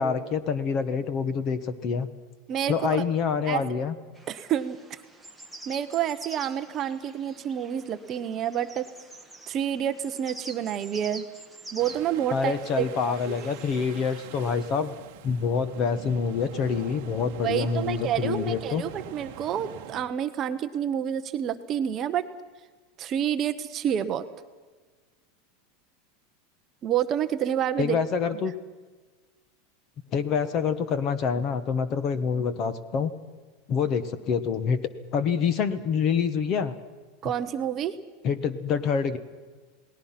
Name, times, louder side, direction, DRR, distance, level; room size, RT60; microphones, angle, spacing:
voice 1, 0.0-2.1 2.7-3.9 12.3-14.9 15.2-18.8 27.8-28.5 30.1-33.1 33.7-34.8 35.1-36.7 38.2-39.2, left 6 dB, 30° left, 13 dB, 1.1 m, -26 dB
voice 2, 2.5-3.0 3.5-3.6 4.3-5.0 5.7-8.9 9.5-11.2 11.7-13.4 17.4-22.2 23.0-24.3 26.8-28.0 28.3-28.4 37.2-38.0, right 10 dB, 25° right, 9 dB, 0.8 m, -29 dB
sound 1, 4.1-14.2, right 2 dB, ahead, 1.2 m, -46 dB
sound 2, 11.8-20.0, right 12 dB, 50° right, 1.2 m, -44 dB
29.0 x 19.0 x 5.9 m, 1.4 s
supercardioid pair, 180°, 0 cm